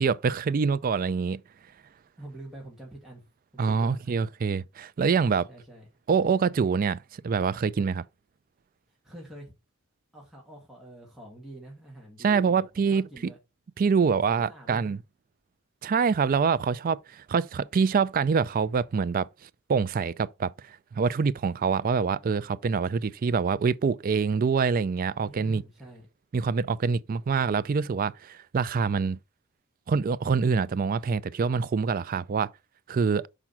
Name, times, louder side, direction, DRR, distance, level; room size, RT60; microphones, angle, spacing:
voice 1, 0.0-1.4 3.6-5.5 6.1-7.0 7.2-8.0 12.2-13.3 13.8-15.0 15.8-25.6 26.3-29.2 29.9-32.5 32.9-33.2, right 5 dB, 40° right, 0.3 m, -25 dB
voice 2, 2.2-3.2 3.5-4.2 5.5-5.9 9.0-9.5 10.1-13.4 14.2-14.9 25.2-26.1, right 1 dB, ahead, 2.0 m, -46 dB
6.0 x 5.0 x 5.6 m
head